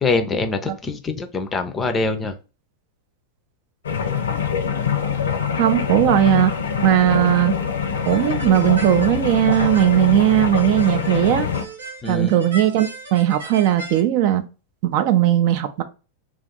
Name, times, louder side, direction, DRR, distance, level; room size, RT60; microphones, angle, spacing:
voice 1, 0.0-2.4 12.0-12.3, left 3 dB, 20° left, 0.5 m, -24 dB
sound 1, 3.8-11.6, left 7 dB, 65° left, 0.6 m, -24 dB
voice 2, 5.5-7.6 8.1-11.5 12.1-14.4 14.8-15.8, right 12 dB, 45° right, 0.4 m, -18 dB
sound 2, 8.0-14.0, right 2 dB, 70° right, 0.8 m, -37 dB
2.4 x 2.4 x 3.9 m
figure-of-eight pair, 90°, 0 cm